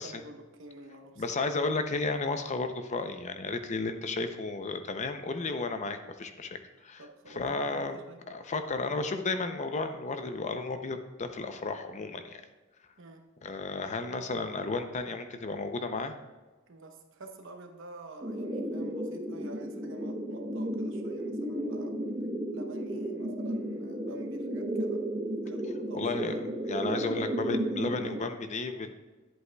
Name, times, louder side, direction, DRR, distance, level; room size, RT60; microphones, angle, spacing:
voice 1, 0.0-1.2 7.0-8.2 13.0-13.2 16.7-22.0 22.5-25.0 25.4-26.4, right 2 dB, 65° right, 4 dB, 0.9 m, -49 dB
voice 2, 1.2-7.0 7.4-8.0 8.3-12.4 13.4-16.1 25.9-28.9, left 3 dB, 35° left, 8 dB, 0.5 m, -33 dB
sound 1, 18.2-28.2, right 1 dB, 25° right, 0.9 m, -33 dB
10.5 x 7.9 x 2.3 m, 1.2 s
head